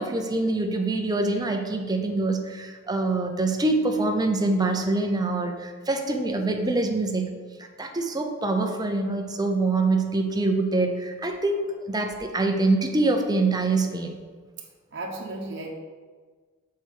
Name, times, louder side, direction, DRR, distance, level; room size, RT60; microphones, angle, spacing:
voice 1, 0.0-7.3 7.6-14.2, right 2 dB, 20° right, 4 dB, 0.8 m, -25 dB
voice 2, 14.6-15.7, right 2 dB, 60° right, 0 dB, 1.0 m, -35 dB
6.4 x 4.7 x 6.4 m, 1.5 s
head